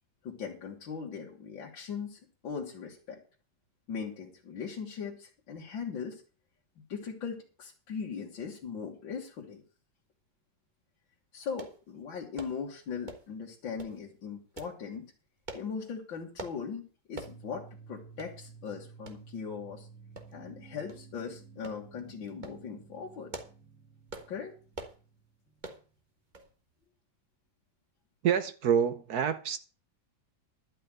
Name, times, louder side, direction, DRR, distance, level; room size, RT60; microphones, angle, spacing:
voice 1, 0.2-3.2 3.9-6.2 6.9-9.6 11.3-15.1 15.5-19.9 20.3-23.3 24.3-24.5, left 6 dB, 75° left, 2.3 m, -39 dB
sound 1, 11.6-11.8 12.4-12.6 13.1-13.3 13.8-14.0 14.6-14.8 15.5-15.7 16.4-16.6 17.2-17.4 17.7-17.8 18.2-18.3 19.1-19.2 20.2-20.5 20.9-21.0 21.6-21.8 22.3-22.6 23.1-23.6 24.1-24.3 24.7-25.0 25.6-25.8 26.3-26.5 26.8-26.9, right 2 dB, 25° right, 1.3 m, -43 dB
sound 2, 17.2-25.9, right 5 dB, 5° right, 1.6 m, -53 dB
voice 2, 28.2-29.6, right 8 dB, 60° right, 1.1 m, -27 dB
12.0 x 5.6 x 8.8 m
omnidirectional pair, 2.1 m